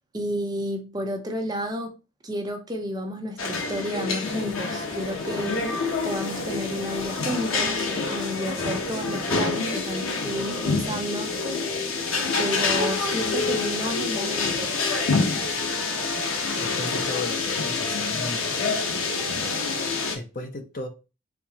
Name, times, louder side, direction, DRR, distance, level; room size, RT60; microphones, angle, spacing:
voice 1, 0.1-1.9 2.2-11.4 12.4-14.7, equal, 20° right, 0.7 m, -31 dB
sound 1, 3.4-20.2, left 4 dB, 85° left, 1.0 m, -27 dB
sound 2, 4.2-10.8, equal, 25° left, 2.1 m, -45 dB
voice 2, 16.6-18.6 20.1-20.9, left 2 dB, 45° left, 0.7 m, -35 dB
4.4 x 3.7 x 2.8 m
head